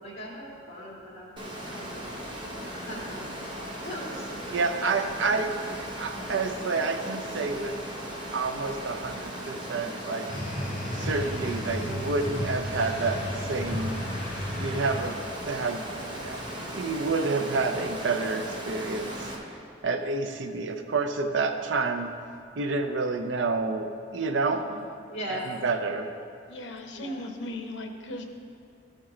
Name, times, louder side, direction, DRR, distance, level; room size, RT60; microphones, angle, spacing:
voice 1, 0.0-2.1 2.7-5.0 25.1-25.6 26.9-27.3, equal, 35° left, -5 dB, 2.1 m, -40 dB
Water, 1.4-19.4, equal, 25° right, 1.0 m, -37 dB
voice 2, 4.5-7.8 8.3-10.3 11.0-14.0 14.6-16.4 16.7-19.3 19.8-22.1 22.6-24.7 25.3-26.1, right 3 dB, 85° right, 7 dB, 0.5 m, -29 dB
sound 1, 10.3-15.4, left 1 dB, 65° left, 1.5 m, -34 dB
voice 3, 24.5-24.9 26.5-28.2, left 1 dB, 80° left, 4 dB, 0.8 m, -38 dB
13.0 x 4.5 x 3.7 m, 2.4 s
head